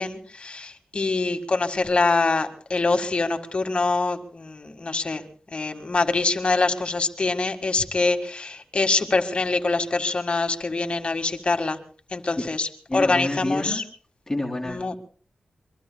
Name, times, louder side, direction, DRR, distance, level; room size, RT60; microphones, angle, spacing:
voice 1, 0.0-5.2 5.5-11.8 12.1-12.7 12.9-13.8 14.6-14.9, left 3 dB, 50° left, 7 dB, 1.9 m, -24 dB
voice 2, 12.9-13.8 14.3-15.0, left 1 dB, 20° left, -2 dB, 2.9 m, -28 dB
23.5 x 23.5 x 2.3 m, 0.43 s
cardioid pair, 50°, 2 cm